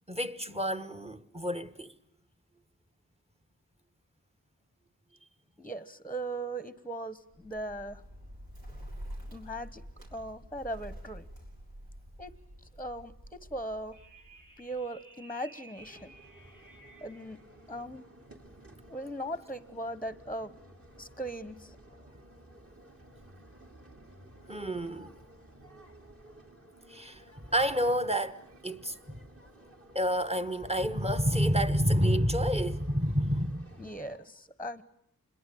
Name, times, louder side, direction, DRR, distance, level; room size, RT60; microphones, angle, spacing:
voice 1, 0.1-1.9 24.5-25.1 26.9-29.2 29.9-33.8, equal, 15° right, 1.3 m, -29 dB
voice 2, 5.6-8.0 9.3-9.8 10.1-11.2 12.2-12.3 12.8-14.0 14.6-16.1 17.0-17.4 17.7-18.0 18.9-21.8 33.8-34.8, right 1 dB, 5° left, 1.1 m, -39 dB
Bird, 7.2-15.0, equal, 85° right, 6.4 m, -47 dB
sound 1, 13.9-17.4, right 2 dB, 65° right, 4.3 m, -55 dB
sound 2, 15.8-34.2, right 1 dB, 40° right, 3.0 m, -54 dB
26.5 x 21.5 x 8.6 m
wide cardioid pair, 70°, 35 cm